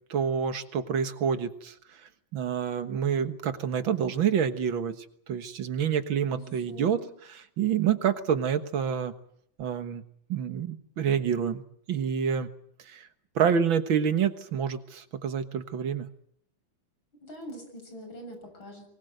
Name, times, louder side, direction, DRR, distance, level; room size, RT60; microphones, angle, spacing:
voice 1, 0.1-1.7 2.3-5.0 5.3-9.1 9.6-10.0 10.3-11.6 11.9-12.5 12.9-13.1 13.4-16.1, right 7 dB, 75° right, 9 dB, 2.2 m, -27 dB
voice 2, 6.3-7.1 17.2-18.8, equal, 75° left, 4 dB, 7.9 m, -44 dB
24.0 x 20.5 x 8.0 m, 0.67 s
omnidirectional pair, 2.2 m